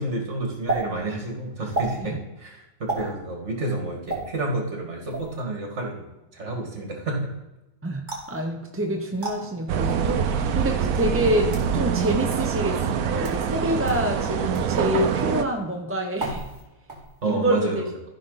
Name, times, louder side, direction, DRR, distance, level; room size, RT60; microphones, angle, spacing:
voice 1, 0.0-6.1 6.3-7.3 17.2-17.9, right 2 dB, 55° right, 0 dB, 2.4 m, -29 dB
sound 1, 0.7-0.8 1.7-1.9 2.9-3.1 4.1-4.2 5.1-5.4 8.1-8.4 9.2-9.4 10.3-10.4 11.2-11.7 12.3-12.4 13.1-13.4 13.9-14.0 14.5-14.7 16.2-16.6 16.9-17.3, right 2 dB, 35° right, 2.6 m, -30 dB
voice 2, 7.8-12.8 13.1-16.4 17.2-17.8, equal, 15° right, 2 dB, 0.6 m, -27 dB
sound 2, 9.7-15.4, right 7 dB, 85° right, 1.1 m, -25 dB
14.0 x 5.7 x 4.0 m, 1.0 s
omnidirectional pair, 1.4 m